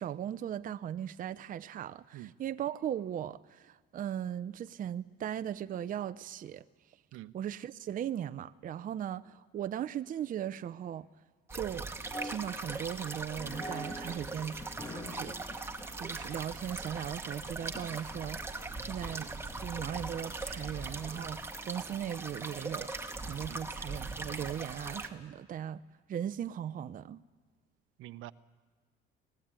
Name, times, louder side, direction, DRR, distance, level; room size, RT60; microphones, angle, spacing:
voice 1, 0.0-6.6 7.3-11.1 11.5-11.9 12.2-15.4 16.0-19.3 19.6-25.8 26.1-27.2, right 10 dB, 40° right, 0.6 m, -38 dB
sound 1, 11.5-25.1, right 3 dB, 10° right, 2.0 m, -40 dB
sound 2, 11.9-25.2, equal, 15° left, 2.1 m, -49 dB
voice 2, 28.0-28.3, right 16 dB, 70° right, 0.9 m, -45 dB
25.0 x 18.5 x 9.0 m
cardioid pair, 100°, 21 cm